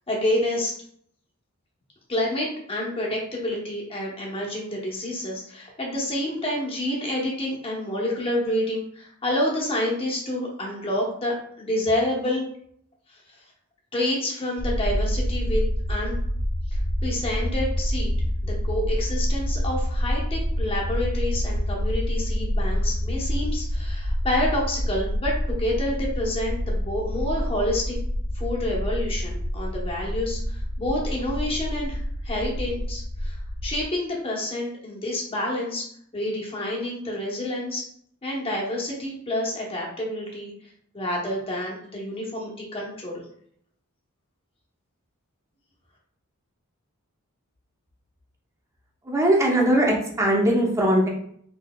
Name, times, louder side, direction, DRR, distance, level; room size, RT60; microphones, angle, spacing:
voice 1, 0.1-0.7 2.1-12.4 13.1-13.4 13.9-15.6 15.9-16.2 16.7-18.1 18.4-28.0 28.3-33.4 33.6-37.9 38.2-40.5 40.9-43.2, left 1 dB, 25° left, -3 dB, 0.9 m, -28 dB
sound 1, 14.6-33.8, equal, 70° left, 0.5 m, -27 dB
voice 2, 49.0-51.1, right 1 dB, 15° right, -1 dB, 0.7 m, -20 dB
4.1 x 3.2 x 2.2 m, 0.65 s
head